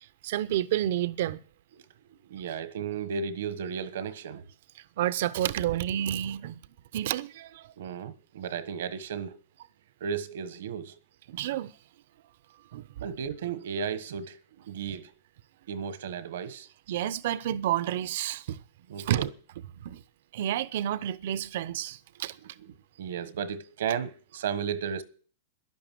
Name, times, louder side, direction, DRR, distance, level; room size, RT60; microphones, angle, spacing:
voice 1, 0.2-1.4 5.0-6.6 6.9-7.7 11.3-11.7 12.7-12.9 16.9-18.6 19.0-19.3 19.8-20.0 20.3-22.4, right 12 dB, 65° right, 0.7 m, -30 dB
voice 2, 2.1-4.4 7.8-9.4 10.0-11.0 13.0-15.1 15.7-16.7 18.9-19.3 23.0-25.0, right 7 dB, 80° right, 1.3 m, -34 dB
11.5 x 11.0 x 7.6 m
supercardioid pair, 150°, 0 cm